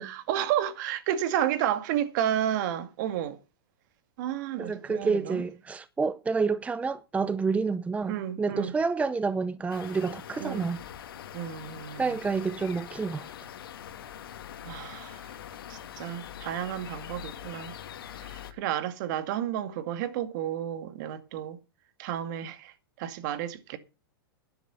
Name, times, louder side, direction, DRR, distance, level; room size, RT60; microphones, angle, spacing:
voice 1, 0.0-3.4 4.2-5.4 8.1-8.7 10.4-10.7 11.3-12.2 14.6-15.3 15.7-17.8 18.2-21.6 22.0-23.8, right 11 dB, 55° right, 2.1 m, -31 dB
voice 2, 4.6-10.8 12.0-13.3, right 4 dB, 10° right, 0.7 m, -29 dB
sound 1, 9.7-18.5, left 10 dB, 70° left, 2.0 m, -43 dB
12.0 x 10.5 x 5.7 m
hypercardioid pair, 110°, 12 cm